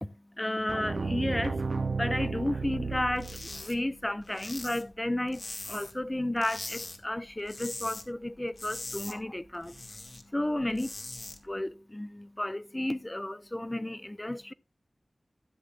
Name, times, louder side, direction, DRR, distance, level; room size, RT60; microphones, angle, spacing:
voice 1, 0.0-1.6 1.9-9.8 10.3-10.9 11.4-14.5, left 1 dB, 20° left, 0.6 m, -33 dB
sound 1, 0.7-3.8, right 4 dB, 75° right, 0.7 m, -33 dB
sound 2, 3.2-3.8 4.0-6.0 6.4-7.0 7.3-8.1 8.4-10.2 10.6-11.4, left 2 dB, 65° left, 2.1 m, -41 dB
15.5 x 8.2 x 2.5 m
wide cardioid pair, 55°, 0 cm